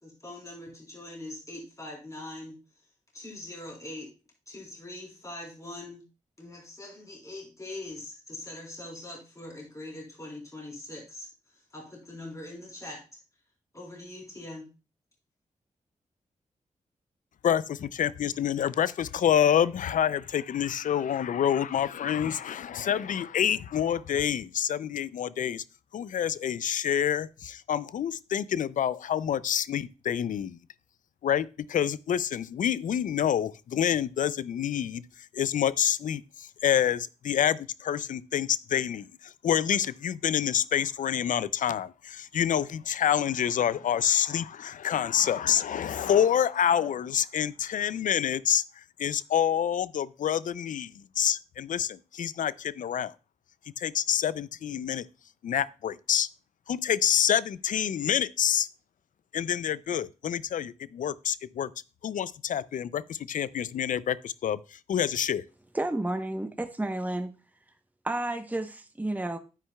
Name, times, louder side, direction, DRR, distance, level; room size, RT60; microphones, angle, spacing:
voice 1, 0.0-2.6 3.1-4.1 4.5-6.0 6.4-11.3 11.7-13.0 13.7-14.7, left 1 dB, 25° left, 3.6 m, -42 dB
voice 2, 17.4-25.6 25.9-30.6 31.2-53.1 53.8-55.0 55.4-56.3 56.7-58.7 59.3-61.7 62.0-65.4, left 9 dB, 75° left, 0.4 m, -27 dB
voice 3, 65.7-67.3 68.0-69.4, right 1 dB, 10° right, 0.9 m, -31 dB
9.3 x 9.0 x 2.2 m
cardioid pair, 55°, 14 cm